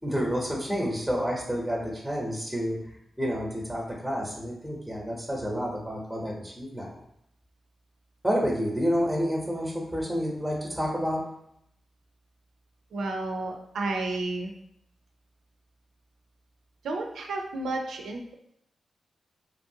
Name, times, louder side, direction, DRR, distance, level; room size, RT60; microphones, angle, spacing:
voice 1, 0.0-2.8 3.2-6.9 8.2-11.2, equal, ahead, -3 dB, 0.8 m, -29 dB
voice 2, 12.9-14.5 16.8-18.3, right 2 dB, 85° right, 2 dB, 0.4 m, -31 dB
3.0 x 2.6 x 2.7 m, 0.74 s
cardioid pair, 60°, 0 cm